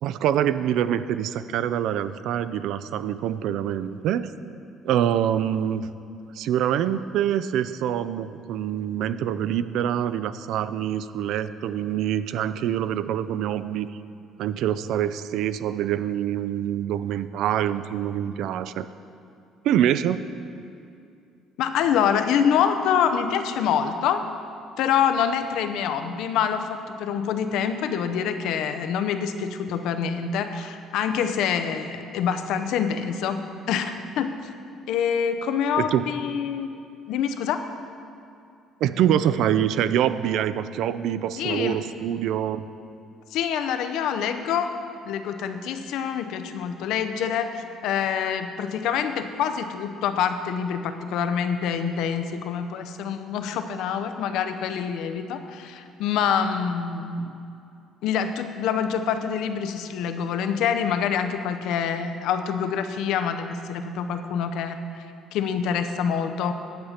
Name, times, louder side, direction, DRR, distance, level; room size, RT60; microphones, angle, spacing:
voice 1, 0.0-4.3 4.8-5.9 6.3-13.9 14.4-18.9 19.6-20.2 35.8-36.1 38.8-42.6, right 10 dB, 65° right, 13 dB, 0.4 m, -25 dB
voice 2, 21.6-24.2 24.8-34.4 34.9-36.8 37.1-37.7 41.4-41.8 43.3-44.7 45.0-57.3 58.0-64.8 65.3-66.5, left 7 dB, 70° left, 8 dB, 0.7 m, -26 dB
10.5 x 5.8 x 8.0 m, 2.5 s
cardioid pair, 160°, 0 cm